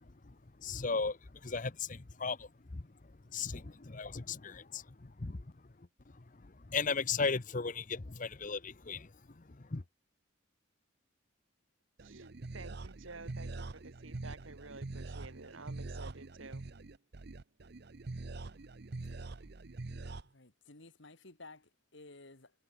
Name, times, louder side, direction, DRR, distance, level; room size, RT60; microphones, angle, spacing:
voice 1, 0.0-5.5 5.8-5.9 6.1-9.8, left 4 dB, 40° left, 0.8 m, -37 dB
sound 1, 12.0-20.2, right 2 dB, 50° right, 0.8 m, -44 dB
voice 2, 12.0-16.7, right 3 dB, 75° right, 3.0 m, -51 dB
voice 3, 20.2-22.5, left 2 dB, 60° left, 2.2 m, -54 dB
head